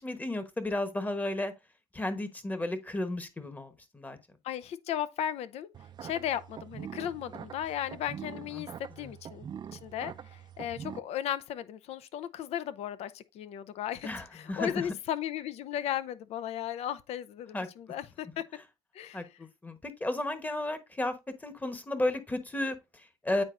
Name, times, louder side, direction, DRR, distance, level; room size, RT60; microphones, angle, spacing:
voice 1, 0.0-1.5 1.9-4.2 8.6-8.7 9.0-9.1 14.0-14.8 17.5-17.7 19.1-21.1 21.4-23.4, left 1 dB, 15° left, 1.1 m, -33 dB
voice 2, 4.4-5.7 6.0-8.7 9.0-9.4 9.7-18.4 18.9-19.4, left 10 dB, 65° left, 0.6 m, -36 dB
sound 1, 5.7-11.0, right 8 dB, 40° right, 0.4 m, -44 dB
8.8 x 4.2 x 2.5 m
supercardioid pair, 85°, 11 cm